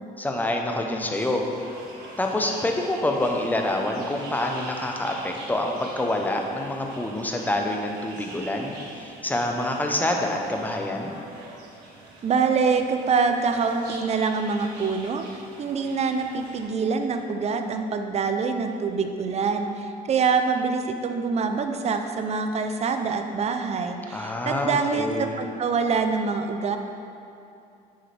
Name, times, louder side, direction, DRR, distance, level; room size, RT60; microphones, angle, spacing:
voice 1, 0.2-1.4 2.2-8.8 9.2-11.1 24.1-25.4, left 1 dB, 10° left, 2 dB, 0.8 m, -26 dB
sound 1, 1.1-16.6, right 2 dB, 85° right, 1.5 m, -45 dB
voice 2, 12.2-26.8, right 5 dB, 40° right, 6 dB, 0.6 m, -25 dB
8.8 x 6.5 x 3.4 m, 2.6 s
cardioid pair, 110°, 17 cm